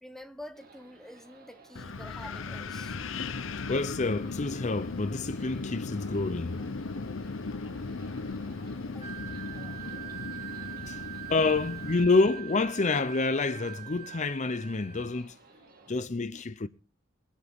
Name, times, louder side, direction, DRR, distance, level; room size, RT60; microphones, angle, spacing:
voice 1, 0.0-3.3 8.8-9.1, left 1 dB, ahead, 1.0 m, -48 dB
sound 1, 0.5-15.9, right 3 dB, 50° right, 2.4 m, -55 dB
Wind, 1.8-12.0, left 3 dB, 85° left, 0.8 m, -37 dB
voice 2, 3.7-6.5 10.9-11.0 11.3-15.4 15.9-16.7, left 3 dB, 40° left, 0.6 m, -28 dB
Wind instrument woodwind instrument, 9.0-15.1, right 13 dB, 30° right, 1.5 m, -43 dB
22.0 x 10.0 x 3.6 m
head